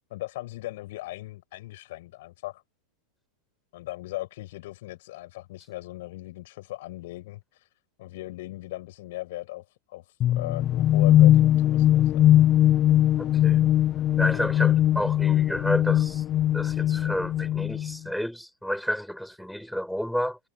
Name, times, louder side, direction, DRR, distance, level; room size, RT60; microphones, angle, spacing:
voice 1, 0.1-2.6 3.7-7.7 8.0-12.3 14.3-14.4, left 17 dB, 55° left, 6.7 m, -38 dB
sound 1, 10.2-18.0, left 12 dB, 30° left, 0.8 m, -20 dB
voice 2, 13.2-13.7 14.2-16.2 16.5-20.4, equal, ahead, 5.8 m, -30 dB
figure-of-eight pair, 90°, 0 cm